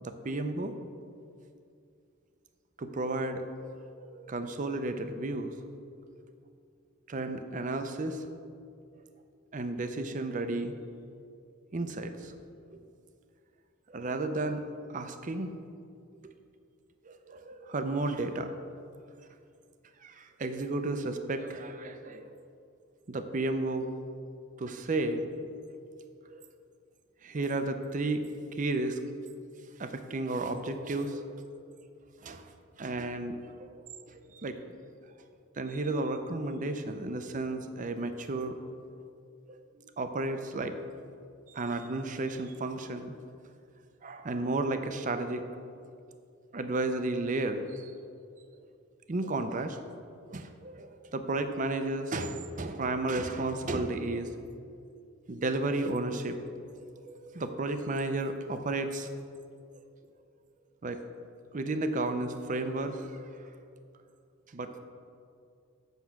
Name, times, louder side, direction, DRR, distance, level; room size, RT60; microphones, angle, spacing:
voice 1, 0.0-0.7 2.8-3.4 3.7-5.5 7.1-8.2 9.5-10.7 11.7-12.3 12.7-12.8 13.9-14.6 14.9-15.5 16.2-16.3 17.0-18.5 20.0-22.3 23.1-23.9 24.6-25.2 26.3-26.4 27.2-28.3 28.5-29.0 29.8-31.8 32.2-32.5 32.8-33.7 34.1-34.6 35.6-38.6 39.5-40.8 41.5-43.1 44.0-45.4 46.5-47.9 49.1-49.8 50.3-54.3 55.3-56.4 56.8-59.1 60.8-61.0 61.5-63.5 64.5-64.8, right 2 dB, 35° right, 8 dB, 0.5 m, -33 dB
8.1 x 6.1 x 5.8 m, 2.4 s
head